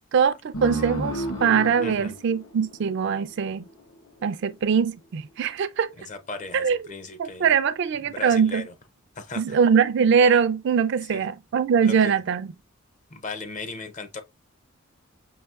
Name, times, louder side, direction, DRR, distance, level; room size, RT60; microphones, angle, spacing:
voice 1, 0.1-3.6 4.2-5.9 6.5-6.8 7.2-8.6 9.4-12.5, right 6 dB, 55° right, 0.3 m, -22 dB
sound 1, 0.5-3.7, equal, 65° left, 1.0 m, -33 dB
voice 2, 1.8-2.2 6.0-7.6 8.1-8.7 9.2-9.6 11.0-11.2 11.8-12.2 13.1-14.2, left 3 dB, 35° left, 0.5 m, -37 dB
5.6 x 2.7 x 2.3 m
head